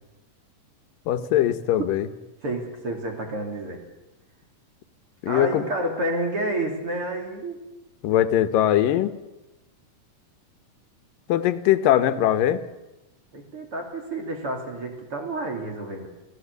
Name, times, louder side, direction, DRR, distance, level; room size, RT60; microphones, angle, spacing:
voice 1, 1.1-2.1 5.2-5.6 8.0-9.1 11.3-12.6, left 12 dB, 85° left, 11 dB, 2.8 m, -21 dB
voice 2, 2.4-3.8 5.3-7.6 13.3-16.1, right 1 dB, 40° right, 2 dB, 3.5 m, -29 dB
28.5 x 16.0 x 8.2 m, 1.0 s
omnidirectional pair, 3.8 m